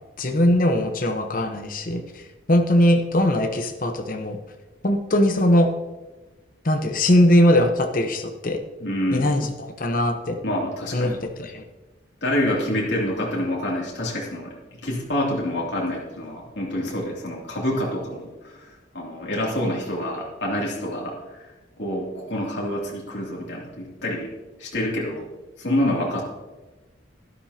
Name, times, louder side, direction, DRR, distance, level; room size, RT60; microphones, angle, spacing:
voice 1, 0.2-2.2 2.5-4.4 4.8-5.7 6.6-8.6 9.1-10.4 10.9-11.6, left 1 dB, 50° left, 5 dB, 1.0 m, -20 dB
voice 2, 8.8-9.3 10.4-11.2 12.2-14.5 14.8-21.4 21.8-24.3 24.6-25.3 25.6-26.2, left 1 dB, 75° left, -3 dB, 2.9 m, -27 dB
12.5 x 12.0 x 2.9 m, 1.2 s
head